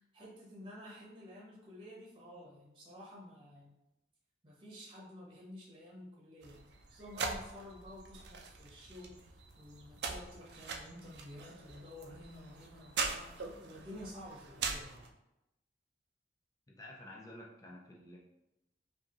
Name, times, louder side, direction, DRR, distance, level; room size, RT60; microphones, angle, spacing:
voice 1, 0.1-3.7 4.4-9.2 9.6-15.1, left 1 dB, 25° right, -4 dB, 0.9 m, -51 dB
sound 1, 6.4-15.1, right 4 dB, 75° right, 0.5 m, -42 dB
voice 2, 16.7-18.2, left 1 dB, 20° left, -2 dB, 0.4 m, -51 dB
4.9 x 2.6 x 2.9 m, 0.90 s
head